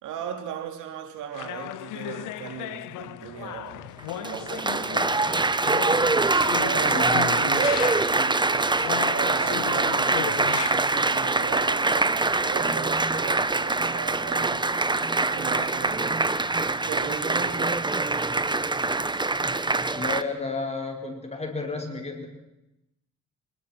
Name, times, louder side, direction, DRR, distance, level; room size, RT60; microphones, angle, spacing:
voice 1, 0.0-5.5 6.5-14.7 15.2-16.2 16.6-17.9, right 8 dB, 85° right, 6 dB, 3.0 m, -37 dB
sound 1, 1.3-8.3 8.8-10.7, left 15 dB, 90° left, 0.8 m, -35 dB
Applause, 4.0-20.2, right 3 dB, 15° right, 1.0 m, -24 dB
voice 2, 6.9-7.3 19.9-22.3, left 3 dB, 20° left, 3 dB, 5.3 m, -32 dB
24.5 x 20.5 x 6.0 m, 0.89 s
cardioid pair, 90°, 30 cm